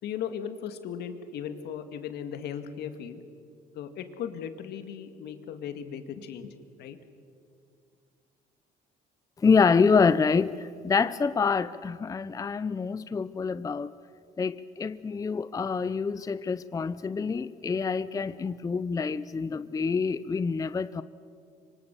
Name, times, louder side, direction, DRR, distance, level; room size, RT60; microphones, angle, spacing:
voice 1, 0.0-3.2 3.7-7.0, left 8 dB, 75° left, 8 dB, 2.0 m, -37 dB
voice 2, 9.4-13.9 14.4-21.0, left 5 dB, 20° left, 15 dB, 0.5 m, -26 dB
25.5 x 24.5 x 6.9 m, 2.3 s
cardioid pair, 110°, 17 cm